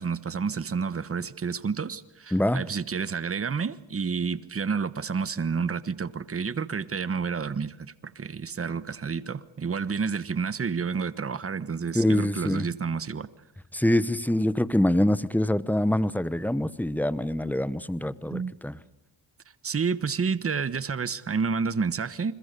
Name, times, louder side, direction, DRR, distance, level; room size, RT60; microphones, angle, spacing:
voice 1, 0.0-13.3 18.3-18.6 19.6-22.3, right 5 dB, 30° right, 15 dB, 1.2 m, -30 dB
voice 2, 2.3-2.6 11.9-12.7 13.7-18.7, left 1 dB, 5° left, 17 dB, 1.0 m, -25 dB
28.5 x 22.0 x 6.8 m, 0.91 s
cardioid pair, 80°, 47 cm